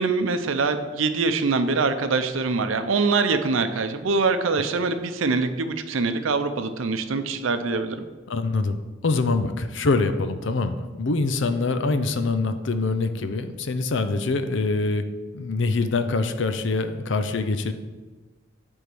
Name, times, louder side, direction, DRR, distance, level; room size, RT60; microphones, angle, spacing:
voice 1, 0.0-8.0, right 4 dB, 85° right, 9 dB, 0.6 m, -24 dB
voice 2, 8.3-8.8 9.0-15.1 15.3-17.7, left 3 dB, 70° left, 9 dB, 0.6 m, -24 dB
8.1 x 3.6 x 6.1 m, 1.3 s
head